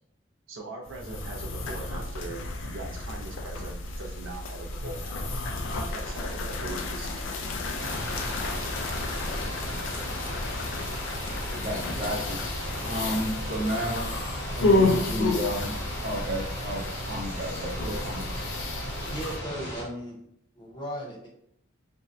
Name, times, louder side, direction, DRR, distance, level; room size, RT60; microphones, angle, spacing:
voice 1, 0.5-5.4 5.9-7.3, right 2 dB, 75° right, 0 dB, 0.5 m, -41 dB
sound 1, 0.8-19.4, left 2 dB, 75° left, 0.4 m, -31 dB
sound 2, 7.8-19.8, equal, 55° left, 0.7 m, -36 dB
voice 2, 11.5-12.4 12.8-14.1 14.5-15.8 16.0-18.3, equal, 40° right, -3 dB, 0.7 m, -32 dB
voice 3, 19.1-20.2 20.6-21.3, equal, 25° left, -3 dB, 0.5 m, -36 dB
2.6 x 2.1 x 2.3 m, 0.73 s
head